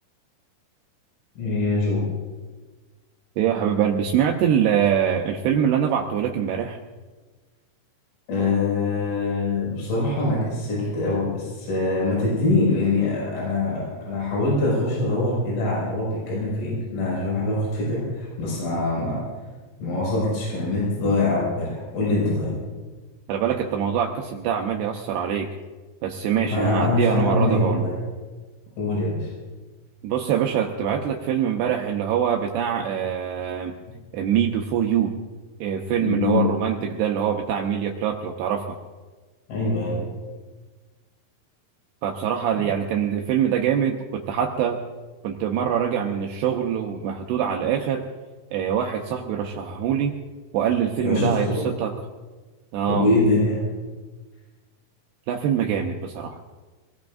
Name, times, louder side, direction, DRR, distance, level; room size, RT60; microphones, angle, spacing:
voice 1, 1.4-2.1 8.3-19.2 19.8-22.6 26.4-27.9 28.8-29.3 36.0-36.5 39.5-40.1 42.5-42.6 51.0-51.6 52.9-53.6, left 2 dB, 80° left, -6 dB, 8.3 m, -23 dB
voice 2, 3.4-6.8 23.3-25.5 26.0-27.9 30.0-33.7 34.1-35.1 35.6-38.8 42.0-44.8 45.2-48.0 48.5-50.1 50.5-51.9 52.7-53.1 55.3-56.4, right 8 dB, 80° right, 1 dB, 2.4 m, -24 dB
26.0 x 19.0 x 2.6 m, 1.3 s
omnidirectional pair, 5.8 m